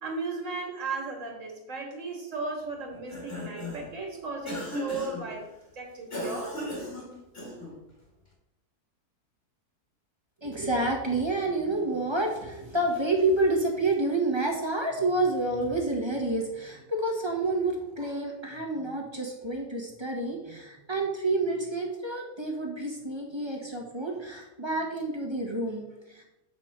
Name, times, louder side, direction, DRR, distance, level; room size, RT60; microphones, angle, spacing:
voice 1, 0.0-5.5 5.7-6.6, right 3 dB, 50° right, 1 dB, 2.3 m, -35 dB
Cough, 2.9-3.9 4.5-5.3 6.1-7.8, left 1 dB, 40° left, 2.8 m, -36 dB
voice 2, 10.4-26.2, right 2 dB, 15° right, 0 dB, 1.4 m, -29 dB
8.2 x 6.2 x 4.4 m, 0.92 s
omnidirectional pair, 1.7 m